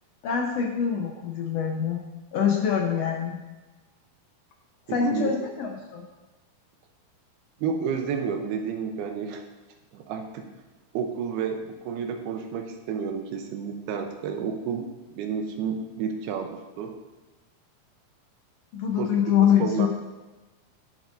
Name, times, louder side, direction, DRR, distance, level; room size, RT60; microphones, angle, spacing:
voice 1, 0.2-2.0 2.3-3.4 4.9-6.0 18.7-19.9, left 8 dB, 90° left, 0 dB, 1.4 m, -24 dB
voice 2, 4.9-5.3 7.6-9.4 9.9-10.5 10.9-17.0 18.9-19.1 19.5-19.9, right 6 dB, 85° right, 4 dB, 2.8 m, -31 dB
19.5 x 7.4 x 2.7 m, 1.1 s
omnidirectional pair, 4.4 m